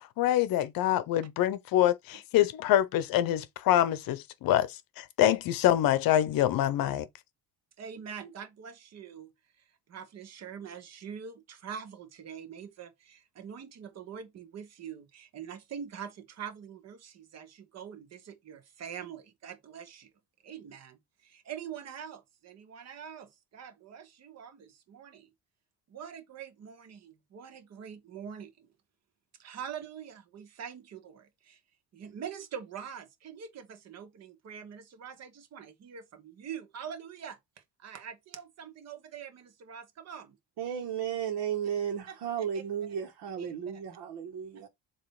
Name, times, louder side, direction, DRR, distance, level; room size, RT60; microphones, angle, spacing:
voice 1, 0.2-7.1, left 12 dB, 55° left, 0.8 m, -25 dB
voice 2, 7.8-20.1 20.4-25.3 25.9-28.7 29.4-31.6 31.9-40.4 41.6-41.7 42.1-42.6 43.4-43.8 44.5-44.7, right 8 dB, 40° right, 1.4 m, -44 dB
voice 3, 40.6-44.7, right 8 dB, 65° right, 1.7 m, -34 dB
7.4 x 3.1 x 4.8 m
cardioid pair, 180°, 41 cm